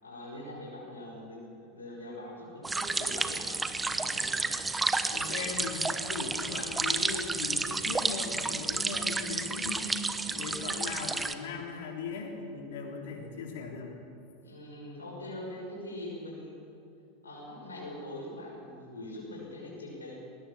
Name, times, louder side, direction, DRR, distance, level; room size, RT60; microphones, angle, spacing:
voice 1, 0.0-4.3 14.4-16.9 17.2-20.2, left 1 dB, 80° left, -2 dB, 5.9 m, -43 dB
sound 1, 2.6-11.3, right 3 dB, 10° right, 1.1 m, -31 dB
voice 2, 5.1-10.0 10.3-13.9, left 4 dB, 60° left, 2 dB, 3.5 m, -38 dB
20.0 x 19.0 x 7.3 m, 2.7 s
figure-of-eight pair, 85°, 0 cm